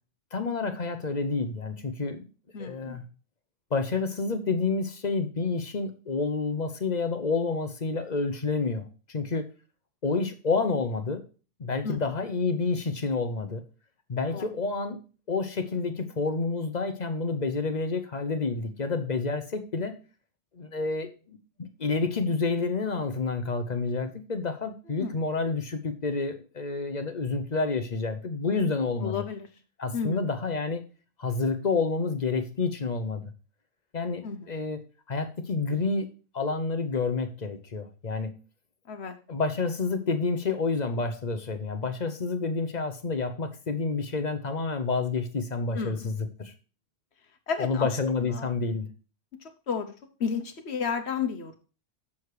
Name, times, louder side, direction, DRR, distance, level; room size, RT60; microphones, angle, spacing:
voice 1, 0.3-2.3 2.6-3.0 3.7-9.5 10.0-11.2 11.6-13.6 14.1-15.0 15.3-20.0 20.5-29.2 29.8-30.9 31.2-33.2 33.9-34.8 35.1-36.1 36.3-38.4 39.3-46.5 47.6-48.9, left 4 dB, 40° left, 9 dB, 0.9 m, -29 dB
voice 2, 2.5-3.0 11.8-12.0 14.3-14.5 25.0-25.1 29.0-29.5 29.9-30.3 34.2-34.5 38.9-39.2 45.7-46.1 47.5-47.9 48.3-48.5 49.7-49.9 50.2-51.6, left 6 dB, 65° left, 6 dB, 1.2 m, -32 dB
7.1 x 6.4 x 4.7 m, 0.35 s
omnidirectional pair, 1.2 m